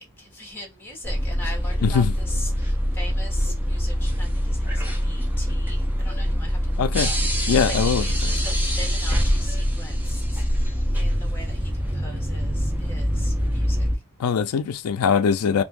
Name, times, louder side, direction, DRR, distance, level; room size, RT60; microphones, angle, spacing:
voice 1, 0.2-10.4 10.9-14.0, left 1 dB, 10° left, 1.3 m, -41 dB
sound 1, 1.0-14.0, equal, 10° right, 0.7 m, -24 dB
voice 2, 1.8-2.1 6.8-7.1 7.5-8.0 14.2-15.6, left 6 dB, 80° left, 0.4 m, -21 dB
2.7 x 2.6 x 3.6 m
head